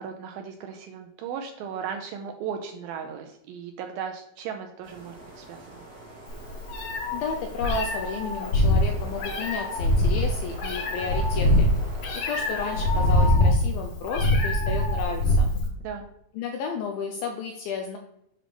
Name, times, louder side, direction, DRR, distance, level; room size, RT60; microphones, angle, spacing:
voice 1, 0.0-5.7 15.8-16.1, right 7 dB, 85° right, 3 dB, 2.2 m, -36 dB
sound 1, 4.8-13.3, right 2 dB, 55° right, 1.0 m, -44 dB
Meow, 6.3-15.7, left 1 dB, 60° left, 2.6 m, -23 dB
voice 2, 7.1-11.7 12.1-15.5 16.3-18.0, left 5 dB, 90° left, 4 dB, 2.1 m, -32 dB
7.6 x 3.4 x 6.2 m, 0.78 s
omnidirectional pair, 4.7 m